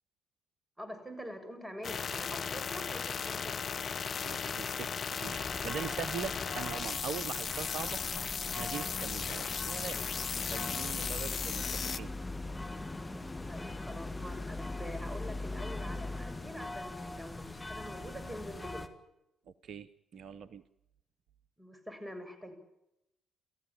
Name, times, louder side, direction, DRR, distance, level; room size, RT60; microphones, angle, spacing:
voice 1, 0.8-3.7 13.5-18.9 21.6-22.5, equal, 10° right, 9 dB, 7.3 m, -45 dB
sound 1, 1.8-12.0, left 6 dB, 50° left, 1.0 m, -36 dB
voice 2, 4.2-4.9 5.2-8.0 8.5-12.1 19.6-20.6, right 7 dB, 60° right, 16 dB, 0.8 m, -42 dB
sound 2, 5.2-18.9, left 2 dB, 20° left, 2.4 m, -41 dB
30.0 x 15.0 x 9.0 m, 0.86 s
hypercardioid pair, 45°, 0 cm